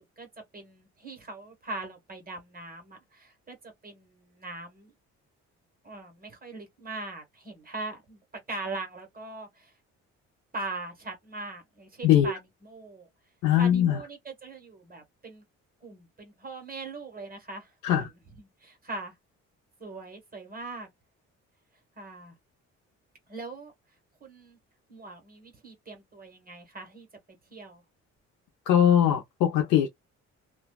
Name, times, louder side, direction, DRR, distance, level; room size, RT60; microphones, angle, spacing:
voice 1, 0.5-3.6 3.8-4.9 5.8-8.2 8.5-9.7 10.5-13.1 13.6-15.4 15.8-18.0 18.6-19.1 19.8-20.9 22.0-22.3 23.3-23.7 24.2-24.6 24.9-27.1 27.5-27.8, right 2 dB, 30° right, 1.3 m, -41 dB
voice 2, 13.4-14.0 17.8-18.1 28.7-29.9, left 10 dB, 90° left, 0.6 m, -21 dB
2.5 x 2.3 x 2.2 m
cardioid pair, 90°, 30 cm